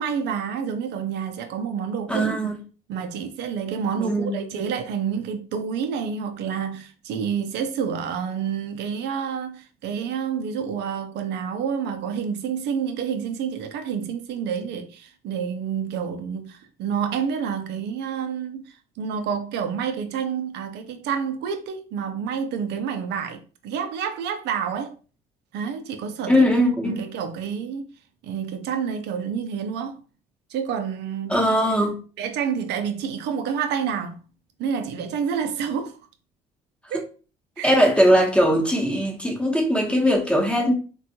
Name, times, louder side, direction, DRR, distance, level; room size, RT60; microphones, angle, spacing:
voice 1, 0.0-2.4 2.9-24.9 25.5-26.4 26.8-27.9 28.2-30.0 30.5-31.4 32.2-34.2 34.6-36.0 36.9-37.1 37.6-37.8 38.1-38.2, right 7 dB, 70° right, 0.6 m, -28 dB
voice 2, 2.1-2.5 4.0-4.4 26.3-27.0 31.3-32.0 37.6-40.7, equal, 5° left, 0.9 m, -20 dB
3.3 x 2.3 x 2.8 m
supercardioid pair, 65°, 18 cm